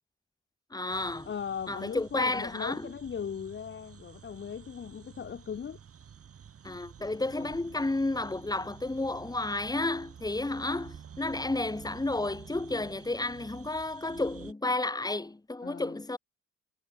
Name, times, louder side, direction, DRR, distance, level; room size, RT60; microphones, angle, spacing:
voice 1, 0.7-1.3 1.7-2.9 6.6-16.2, left 2 dB, 10° left, 2.5 m, -32 dB
sound 1, 0.9-14.5, right 7 dB, 50° right, 4.8 m, -50 dB
voice 2, 1.3-5.8 7.4-7.6 15.6-15.9, left 7 dB, 40° left, 1.2 m, -38 dB
cardioid pair, 90°, 30 cm